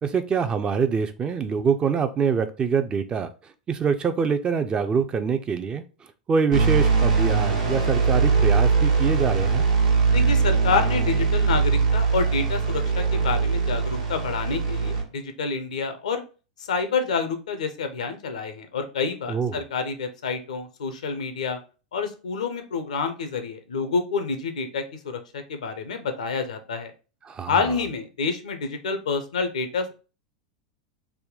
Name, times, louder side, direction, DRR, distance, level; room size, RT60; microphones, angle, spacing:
voice 1, 0.0-5.8 6.3-9.6 19.3-19.6 27.2-27.7, right 6 dB, 25° right, 9 dB, 0.4 m, -25 dB
sound 1, 6.5-15.0, right 5 dB, 70° right, 1.1 m, -21 dB
voice 2, 10.1-16.2 16.6-21.6 21.9-26.9 27.5-29.9, left 4 dB, 80° left, 7 dB, 0.6 m, -28 dB
3.5 x 2.2 x 3.7 m, 0.34 s
hypercardioid pair, 95°, 4 cm